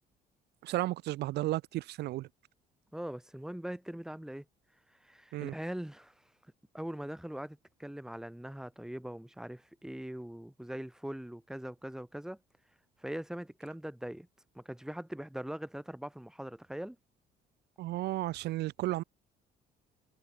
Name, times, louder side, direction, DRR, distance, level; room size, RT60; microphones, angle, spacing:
voice 1, 0.6-2.3 5.3-5.5 17.8-19.0, right 16 dB, 80° right, 3.5 m, -33 dB
voice 2, 2.9-4.5 4.9-6.3 6.7-12.4 13.0-14.3 14.5-17.0, right 1 dB, 5° right, 3.3 m, -41 dB
cardioid pair, 110°, 17 cm